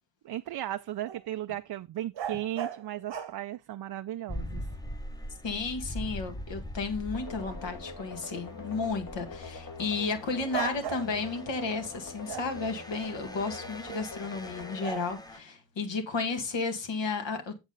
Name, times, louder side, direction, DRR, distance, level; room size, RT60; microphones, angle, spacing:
voice 1, 0.2-4.7, right 13 dB, 60° right, 0.5 m, -36 dB
sound 1, 1.0-1.3 2.1-3.4 5.3-5.4 10.5-11.5 12.3-14.1 14.8-15.1, right 9 dB, 75° right, 1.1 m, -38 dB
sound 2, 4.3-15.4, left 1 dB, 10° left, 0.7 m, -43 dB
voice 2, 5.4-17.5, left 4 dB, 80° left, 2.0 m, -33 dB
sound 3, 7.1-15.8, left 4 dB, 50° left, 1.5 m, -44 dB
8.0 x 7.3 x 3.9 m
wide cardioid pair, 125°, 44 cm